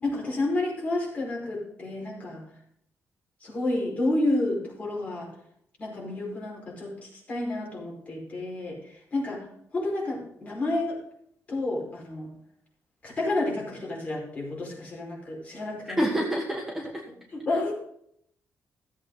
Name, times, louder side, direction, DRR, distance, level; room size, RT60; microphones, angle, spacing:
voice 1, 0.0-2.4 3.4-5.3 5.8-9.5 9.7-11.0 11.5-12.3 13.0-16.0 17.3-17.7, left 2 dB, 25° left, -3 dB, 5.0 m, -30 dB
voice 2, 16.0-17.0, right 1 dB, 5° right, -1 dB, 1.4 m, -27 dB
15.5 x 8.2 x 3.9 m, 0.72 s
wide cardioid pair, 165°, 5 cm